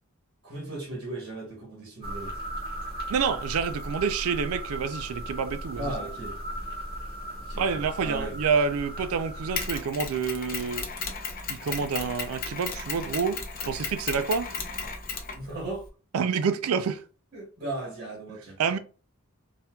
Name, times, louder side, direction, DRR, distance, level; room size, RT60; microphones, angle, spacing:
voice 1, 0.4-2.4 5.7-6.4 7.4-8.4 15.3-15.9 17.3-18.8, right 2 dB, 55° right, 1.1 m, -37 dB
sound 1, 2.0-9.8, right 1 dB, 20° right, 1.4 m, -36 dB
voice 2, 3.1-5.9 7.6-10.9 11.5-14.5 16.1-17.0 18.6-18.8, right 6 dB, 85° right, 0.4 m, -28 dB
Mechanisms, 9.6-15.9, left 5 dB, 40° left, 0.6 m, -35 dB
4.1 x 2.1 x 2.2 m
head